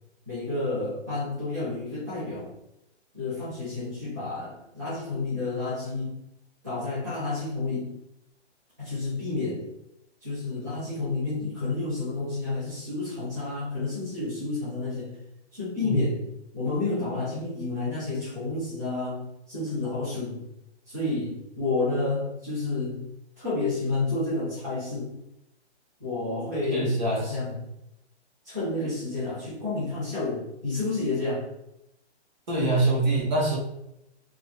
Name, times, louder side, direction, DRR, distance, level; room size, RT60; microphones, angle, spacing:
voice 1, 0.3-2.5 3.1-6.2 6.6-7.9 8.8-9.7 10.2-15.2 15.5-16.2 16.5-20.4 20.9-23.0 23.4-25.1 26.0-27.6 28.4-31.5, left 3 dB, 15° right, -12 dB, 0.5 m, -30 dB
voice 2, 26.7-27.4 32.5-33.6, right 2 dB, 40° right, -3 dB, 1.1 m, -24 dB
2.7 x 2.4 x 3.2 m, 0.84 s
hypercardioid pair, 175°, 34 cm